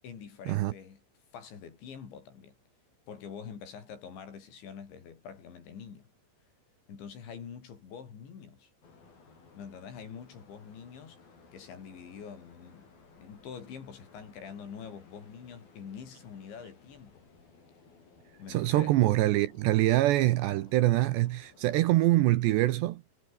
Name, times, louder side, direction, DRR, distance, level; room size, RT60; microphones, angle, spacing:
voice 1, 0.0-1.0 1.3-2.5 3.1-6.1 6.9-8.7 9.5-11.2 11.5-17.3 18.4-19.0, left 7 dB, 65° left, 6.4 m, -45 dB
sound 1, 8.8-21.9, left 4 dB, 45° left, 8.3 m, -58 dB
voice 2, 18.5-23.0, right 16 dB, 75° right, 2.7 m, -24 dB
omnidirectional pair, 5.8 m